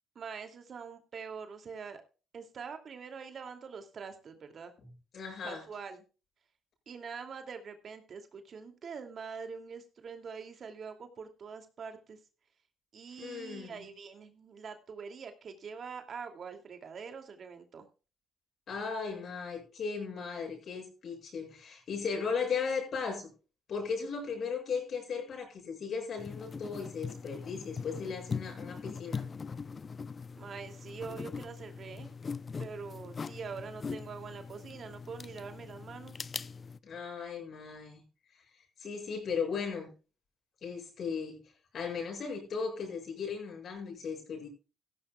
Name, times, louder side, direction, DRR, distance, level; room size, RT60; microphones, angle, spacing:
voice 1, 0.1-2.0 2.3-4.7 5.4-6.0 6.9-12.2 12.9-17.9 30.4-32.1 32.6-36.2, right 5 dB, 55° right, 2.7 m, -44 dB
voice 2, 5.1-5.6 13.2-13.9 18.7-23.3 23.7-29.3 36.8-38.0 38.8-39.9 40.6-41.4 41.7-44.5, left 5 dB, 60° left, 7.6 m, -36 dB
sound 1, 26.2-36.8, left 5 dB, 35° left, 0.6 m, -41 dB
16.0 x 14.0 x 2.4 m
cardioid pair, 90°, 0 cm